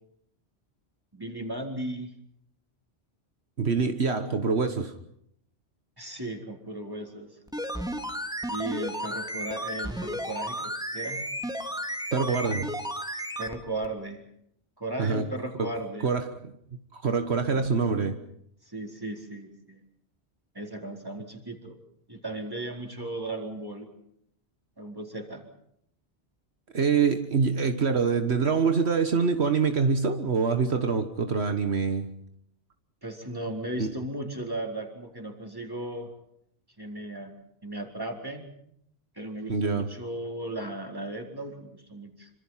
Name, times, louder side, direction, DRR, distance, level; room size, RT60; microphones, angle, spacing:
voice 1, 1.1-2.1 6.0-7.4 8.5-11.3 13.4-14.2 14.8-16.1 17.4-17.7 18.6-19.8 20.5-21.8 22.1-23.9 24.8-25.4 33.0-36.1 36.8-37.3 37.6-38.4 39.1-42.3, right 1 dB, 20° right, 4.4 m, -36 dB
voice 2, 3.6-4.9 12.1-12.8 15.0-15.3 15.6-15.7 16.0-18.2 26.7-32.1 33.8-33.9 39.5-39.9, right 5 dB, 70° right, 1.7 m, -25 dB
sound 1, 7.5-13.6 13.8-13.9, equal, 5° right, 2.1 m, -33 dB
27.0 x 25.5 x 5.8 m
omnidirectional pair, 1.1 m